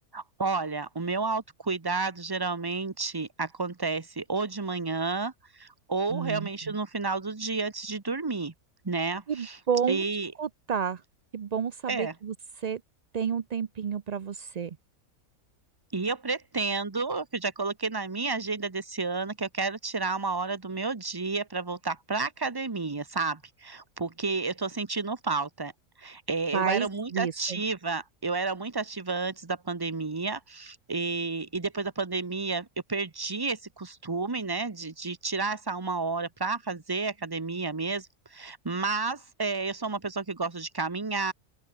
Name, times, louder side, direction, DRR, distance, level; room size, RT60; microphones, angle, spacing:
voice 1, 0.1-8.5 8.8-9.6 9.9-10.3 11.9-12.1 15.9-25.7 26.0-41.3, right 4 dB, 20° right, 0.9 m, -31 dB
voice 2, 6.1-6.8 9.3-10.0 10.4-11.0 11.3-12.8 13.1-14.8 26.5-27.6, right 7 dB, 65° right, 0.4 m, -30 dB
open air
omnidirectional pair, 1.5 m